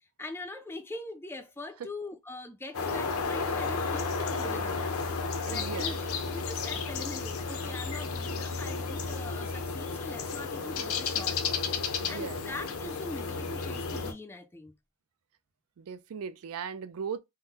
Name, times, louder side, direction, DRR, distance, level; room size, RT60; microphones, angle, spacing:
voice 1, 0.0-5.2 5.4-11.4 12.1-14.7, left 2 dB, 10° left, 0.3 m, -42 dB
sound 1, 2.7-14.1, left 4 dB, 70° left, 0.6 m, -32 dB
voice 2, 5.4-6.0 12.0-12.4 15.8-17.2, right 6 dB, 80° right, 0.4 m, -38 dB
3.6 x 2.1 x 2.8 m
head